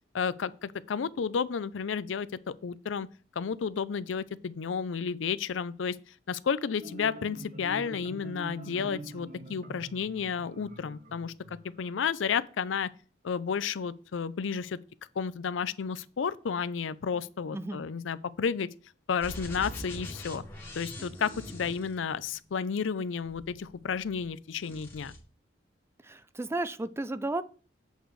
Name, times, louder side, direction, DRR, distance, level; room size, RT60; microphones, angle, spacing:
voice 1, 0.1-3.1 3.4-6.0 6.3-11.3 11.6-12.9 13.2-14.8 15.2-18.7 19.1-20.4 20.8-25.1, left 6 dB, 90° left, 0.5 m, -32 dB
Marimba xylophone, 6.5-12.0, right 1 dB, 45° right, 1.1 m, -45 dB
voice 2, 17.5-17.8 26.0-27.4, right 2 dB, 15° right, 0.3 m, -33 dB
sound 1, 19.2-22.5 23.2-24.3 24.6-25.2, equal, 15° left, 2.2 m, -43 dB
8.2 x 6.6 x 3.2 m
head